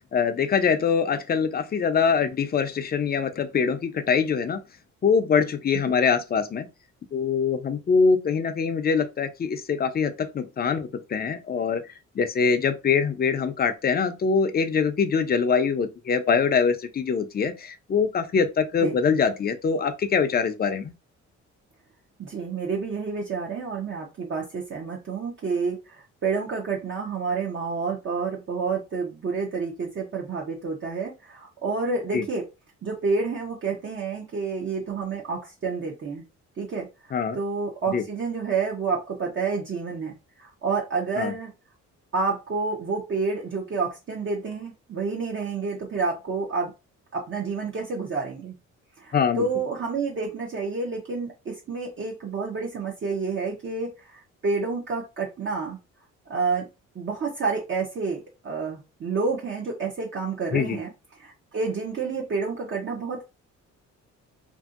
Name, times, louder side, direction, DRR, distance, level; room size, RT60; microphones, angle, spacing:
voice 1, 0.1-4.6 5.0-6.7 7.1-11.8 12.2-20.9 32.1-32.3 37.1-37.4 37.9-38.0 41.2-41.3 49.1-49.5 60.5-60.8, left 6 dB, 30° left, 0.5 m, -23 dB
voice 2, 22.2-32.5 32.8-36.2 36.6-41.5 42.1-46.7 47.1-48.5 49.0-55.8 56.3-56.7 57.0-60.9 61.2-63.2, right 4 dB, 40° right, 0.7 m, -29 dB
2.6 x 2.6 x 2.4 m
cardioid pair, 90°, 30 cm